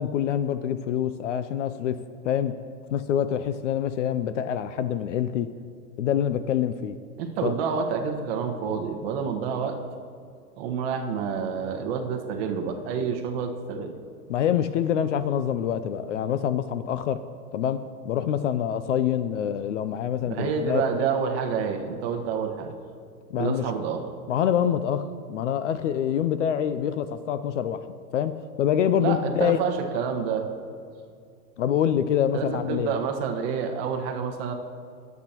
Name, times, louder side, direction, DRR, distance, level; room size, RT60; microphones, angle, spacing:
voice 1, 0.0-2.6 2.9-5.5 6.0-7.0 7.4-7.5 14.3-17.2 17.5-20.8 23.3-23.7 24.3-27.8 28.1-29.6 31.6-32.9, left 9 dB, 55° left, 12 dB, 0.5 m, -26 dB
voice 2, 7.2-9.8 10.6-13.9 20.2-22.7 23.3-24.0 29.0-30.5 32.3-34.5, right 6 dB, 40° right, 3 dB, 1.3 m, -28 dB
21.5 x 8.3 x 2.9 m, 2.4 s
hypercardioid pair, 155°, 46 cm